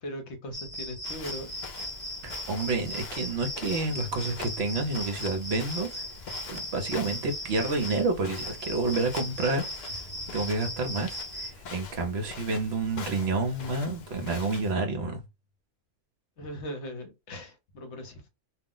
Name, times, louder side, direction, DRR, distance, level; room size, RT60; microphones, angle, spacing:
voice 1, 0.0-1.5 10.1-10.2 16.4-18.3, equal, 65° left, 0.9 m, -39 dB
sound 1, 0.5-11.5, equal, 5° right, 0.9 m, -38 dB
Walk footsteps, 1.0-14.7, left 5 dB, 85° left, 0.4 m, -44 dB
voice 2, 2.2-6.0 6.5-9.6 10.3-15.2, right 3 dB, 60° right, 0.8 m, -29 dB
2.3 x 2.0 x 3.7 m
omnidirectional pair, 1.3 m